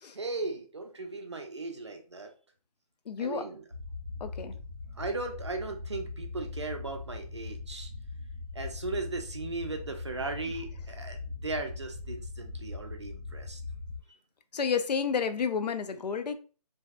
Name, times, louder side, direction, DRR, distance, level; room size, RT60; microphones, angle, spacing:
voice 1, 0.1-2.3 3.2-3.6 4.9-7.9 8.5-13.6, right 3 dB, 45° right, 0.4 m, -37 dB
voice 2, 3.1-3.5 4.2-4.6 14.5-16.4, left 6 dB, 85° left, 0.4 m, -30 dB
sound 1, 3.7-14.0, left 3 dB, 30° left, 0.4 m, -40 dB
2.7 x 2.1 x 2.3 m
hypercardioid pair, 175°, 20 cm